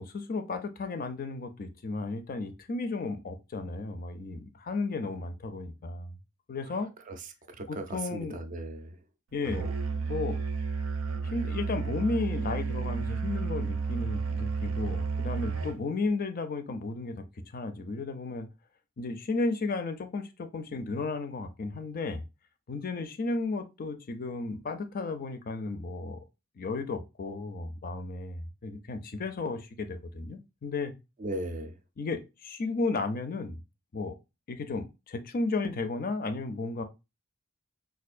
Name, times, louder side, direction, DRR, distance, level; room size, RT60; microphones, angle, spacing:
voice 1, 0.0-6.2 6.5-6.9 7.7-8.4 9.3-9.7 10.1-10.4 11.3-17.2 17.5-18.5 19.0-22.2 22.7-26.2 26.6-30.9 32.0-33.6 33.9-34.1 34.5-36.8, left 3 dB, 45° left, 0.4 m, -34 dB
voice 2, 7.6-9.0 31.2-31.8, right 1 dB, 40° right, 0.4 m, -37 dB
Musical instrument, 9.4-15.8, right 4 dB, 90° right, 0.6 m, -32 dB
4.3 x 2.5 x 2.4 m
head